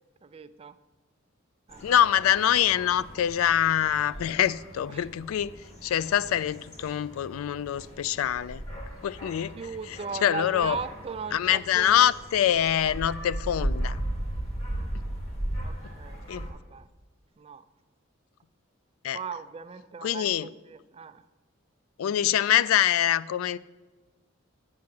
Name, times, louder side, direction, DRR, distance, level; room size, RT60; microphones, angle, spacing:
voice 1, 0.2-0.8 1.7-1.8 4.9-5.1 9.5-12.4 14.7-14.9 15.6-16.9 17.4-17.6 19.1-21.3, right 5 dB, 30° right, 0.3 m, -39 dB
sound 1, 1.7-16.5, right 1 dB, 35° left, 1.9 m, -37 dB
voice 2, 1.8-5.5 5.8-8.6 9.0-9.6 9.9-10.8 11.3-14.0 16.3-16.5 19.0-19.2 20.0-20.5 22.0-23.6, left 10 dB, 90° left, 0.3 m, -25 dB
7.5 x 5.8 x 7.6 m
head